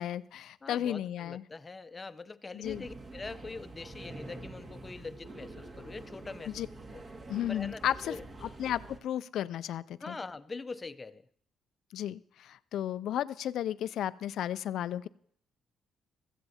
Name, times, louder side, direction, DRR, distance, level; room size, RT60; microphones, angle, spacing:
voice 1, 0.0-1.4 2.5-2.8 6.5-6.7 7.3-8.2 8.4-10.2 11.9-15.1, left 11 dB, 75° left, 0.4 m, -34 dB
voice 2, 0.6-6.7 6.9-7.0 7.5-8.2 10.0-11.2, left 3 dB, 25° left, 0.6 m, -43 dB
sound 1, 2.6-9.0, right 2 dB, 40° right, 1.9 m, -46 dB
15.5 x 14.5 x 2.8 m
cardioid pair, 90°, 0 cm